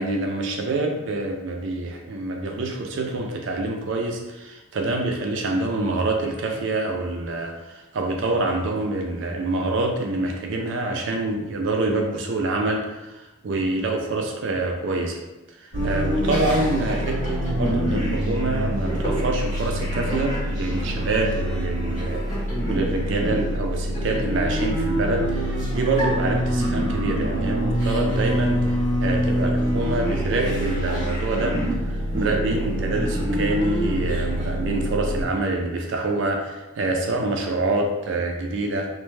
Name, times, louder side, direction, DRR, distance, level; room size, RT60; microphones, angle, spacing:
voice 1, 0.0-15.2 15.5-22.2 22.7-28.7 29.0-31.6 31.9-38.9, right 2 dB, 65° right, 2 dB, 0.4 m, -26 dB
sound 1, 15.7-35.2, equal, 35° left, 1.1 m, -25 dB
2.5 x 2.2 x 3.2 m, 1.1 s
head